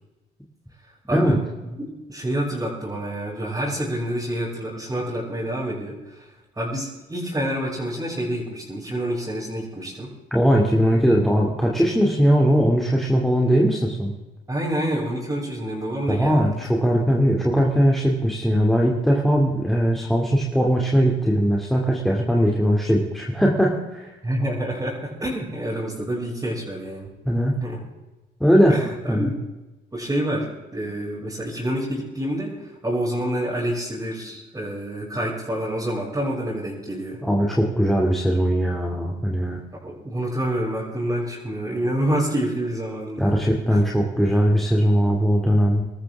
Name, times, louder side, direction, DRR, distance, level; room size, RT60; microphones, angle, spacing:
voice 1, 1.6-10.1 10.9-11.0 14.5-16.5 24.2-27.1 27.6-27.8 28.7-29.3 29.9-37.2 39.7-43.3 43.7-43.8, right 1 dB, 15° right, -8 dB, 6.5 m, -28 dB
voice 2, 10.3-14.1 16.1-24.1 27.2-27.6 28.4-28.8 29.1-29.3 37.2-39.6 43.2-45.8, equal, ahead, -1 dB, 2.6 m, -20 dB
24.5 x 13.5 x 3.6 m, 1.1 s
cardioid pair, 90°, 20 cm